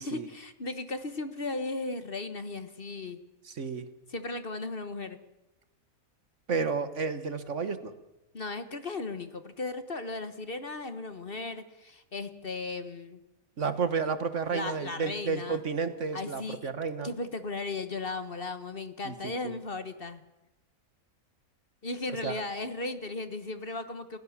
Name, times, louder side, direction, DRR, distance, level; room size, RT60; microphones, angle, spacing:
voice 1, 0.0-3.2 4.1-5.2 8.3-13.2 14.5-15.6 16.1-16.7 17.0-20.2 21.8-24.2, left 3 dB, 40° left, 10 dB, 1.4 m, -36 dB
voice 2, 3.5-3.9 6.5-7.9 13.6-17.1 19.0-19.1 19.4-19.5 22.2-22.4, right 5 dB, 55° right, 11 dB, 1.6 m, -31 dB
29.0 x 16.0 x 7.2 m, 0.99 s
omnidirectional pair, 1.5 m